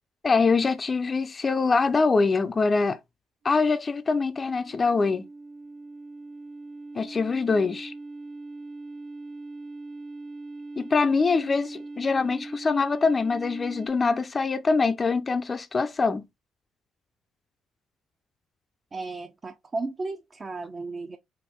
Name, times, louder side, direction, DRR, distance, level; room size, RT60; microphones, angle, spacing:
voice 1, 0.2-3.0 3.4-5.2 6.9-7.9 10.8-16.2, left 4 dB, 30° left, 0.4 m, -24 dB
sound 1, 3.7-13.9, right 2 dB, 70° right, 0.9 m, -41 dB
voice 2, 18.9-21.2, right 3 dB, 30° right, 0.5 m, -34 dB
4.3 x 2.5 x 3.4 m
supercardioid pair, 80°, 0 cm